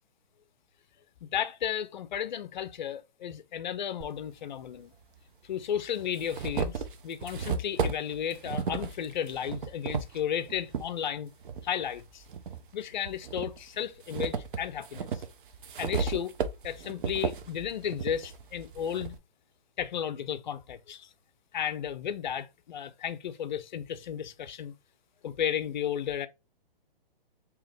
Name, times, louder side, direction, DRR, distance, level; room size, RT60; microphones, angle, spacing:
voice 1, 1.2-4.9 5.5-11.3 11.6-12.2 12.7-15.1 15.8-16.3 16.6-19.2 19.8-21.1 21.5-24.7 25.2-26.3, left 9 dB, 50° left, 0.5 m, -33 dB
sound 1, 4.0-4.1 5.2-5.3 5.8-10.9 11.4-12.6 13.0-19.2, right 5 dB, 60° right, 0.7 m, -34 dB
3.7 x 2.9 x 3.2 m
hypercardioid pair, 150°, 29 cm